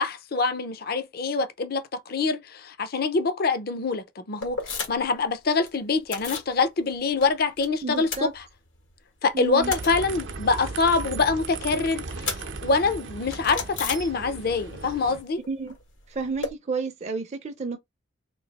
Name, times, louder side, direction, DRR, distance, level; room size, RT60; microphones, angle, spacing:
voice 1, 0.0-4.6 4.9-8.4 9.2-15.4, left 4 dB, 55° left, 0.5 m, -25 dB
sound 1, 4.4-5.2 5.4-6.5 6.9-7.7 7.9-8.9 9.3-14.6 14.9-16.5, left 4 dB, 85° left, 1.7 m, -36 dB
voice 2, 7.8-8.3 9.3-9.7 15.5-15.7 16.1-17.8, right 4 dB, 35° right, 0.5 m, -31 dB
sound 2, 9.6-15.2, right 3 dB, 80° right, 0.6 m, -37 dB
3.1 x 2.7 x 4.0 m
head